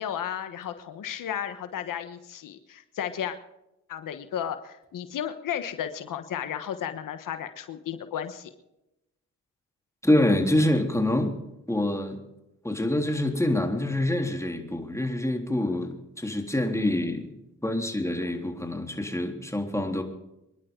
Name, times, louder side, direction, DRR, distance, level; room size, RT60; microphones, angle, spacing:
voice 1, 0.0-3.4 3.9-8.5, left 9 dB, 90° left, 10 dB, 1.2 m, -33 dB
voice 2, 10.0-11.3 11.7-12.2 12.6-17.3 17.6-20.0, left 1 dB, 10° left, 3 dB, 3.7 m, -26 dB
26.5 x 11.0 x 3.8 m, 0.88 s
cardioid pair, 55°, 32 cm